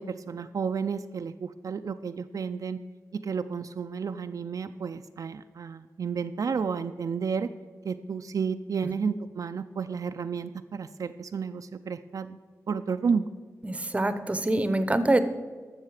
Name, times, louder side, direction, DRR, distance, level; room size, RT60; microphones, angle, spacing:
voice 1, 0.0-2.8 3.1-7.5 7.8-12.4 12.7-13.3, right 6 dB, 70° right, 9 dB, 0.3 m, -31 dB
voice 2, 13.6-15.2, right 1 dB, 20° right, 11 dB, 0.7 m, -25 dB
13.0 x 6.7 x 4.8 m, 1.4 s
wide cardioid pair, 105°, 6 cm